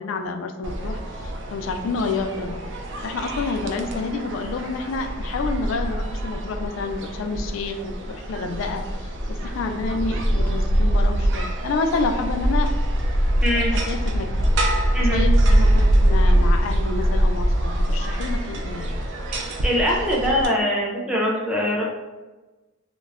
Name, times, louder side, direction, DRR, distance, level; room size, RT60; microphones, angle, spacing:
voice 1, 0.0-2.6 3.0-12.7 13.7-19.0, left 3 dB, 75° left, 5 dB, 0.3 m, -29 dB
sound 1, 0.6-20.5, right 1 dB, 60° right, 0.3 m, -23 dB
voice 2, 13.4-13.7 14.9-15.3 19.3-21.8, equal, 5° right, -4 dB, 0.5 m, -23 dB
2.2 x 2.0 x 3.4 m, 1.2 s
head